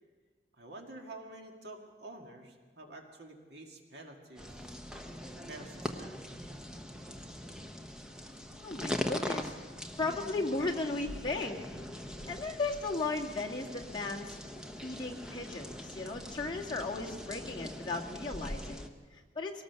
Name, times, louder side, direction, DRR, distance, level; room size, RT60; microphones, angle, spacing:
voice 1, 0.6-4.7 5.3-6.1 12.2-12.4, right 2 dB, 65° right, 2 dB, 2.1 m, -49 dB
sound 1, 4.4-18.9, left 1 dB, 5° right, 0.9 m, -42 dB
voice 2, 8.6-9.5 10.0-11.6 12.3-14.4 14.8-19.6, left 3 dB, 25° left, -2 dB, 1.9 m, -36 dB
23.0 x 18.0 x 6.9 m, 1.5 s
head